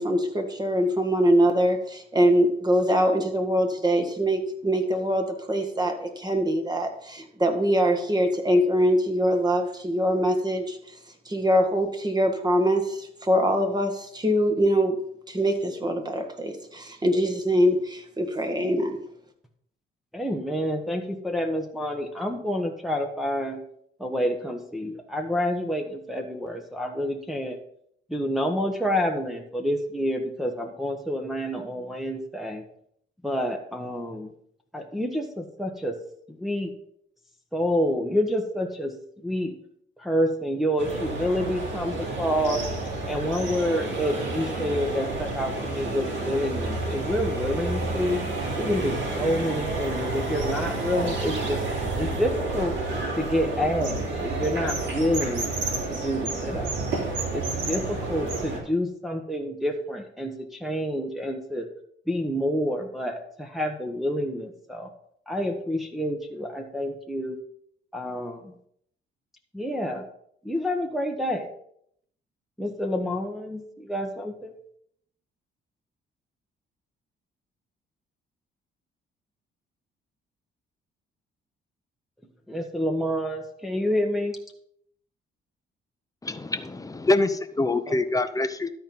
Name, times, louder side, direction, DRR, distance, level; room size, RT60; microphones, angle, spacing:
voice 1, 0.0-10.8 11.2-14.9 15.3-19.0, equal, 20° right, 4 dB, 1.7 m, -23 dB
voice 2, 20.1-23.6 24.0-27.6 28.1-32.6 33.2-34.3 34.7-35.9 36.4-36.7 37.5-38.9 39.2-39.5 40.0-42.6 43.1-48.2 48.6-52.7 53.2-55.5 55.9-56.7 57.3-60.3 60.6-61.7 62.1-64.9 65.3-67.4 67.9-68.4 69.5-70.0 70.5-71.5 72.6-73.6 73.9-74.5 82.5-84.3 87.9-88.0, equal, ahead, 1 dB, 1.1 m, -28 dB
sound 1, 40.8-58.6, right 2 dB, 65° right, 3.3 m, -30 dB
voice 3, 86.2-88.7, left 2 dB, 15° left, 11 dB, 0.8 m, -25 dB
13.0 x 4.5 x 5.5 m, 0.68 s
cardioid pair, 90°, 20 cm